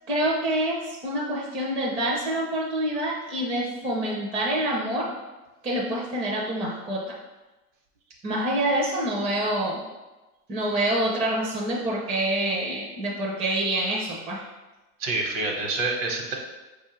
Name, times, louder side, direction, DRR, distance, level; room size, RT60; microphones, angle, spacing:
voice 1, 0.1-5.1 5.6-7.2 8.2-9.8 10.5-14.4, right 1 dB, 15° right, -3 dB, 0.4 m, -26 dB
voice 2, 15.0-16.3, right 3 dB, 55° right, 1 dB, 1.0 m, -27 dB
5.1 x 2.4 x 3.1 m, 1.1 s
hypercardioid pair, 115°, 46 cm